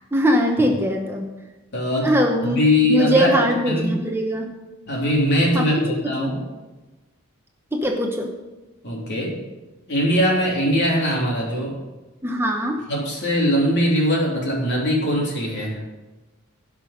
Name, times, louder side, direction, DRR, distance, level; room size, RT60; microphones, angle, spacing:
voice 1, 0.1-1.3 2.0-2.6 2.9-4.5 5.5-6.4 7.7-8.3 12.2-12.8, equal, 10° right, 2 dB, 0.9 m, -21 dB
voice 2, 1.7-2.1 2.5-3.3 3.6-3.9 4.9-6.4 8.8-9.4 9.9-11.8 12.9-15.8, equal, 55° left, -2 dB, 3.2 m, -21 dB
16.0 x 6.0 x 5.2 m, 1.1 s
head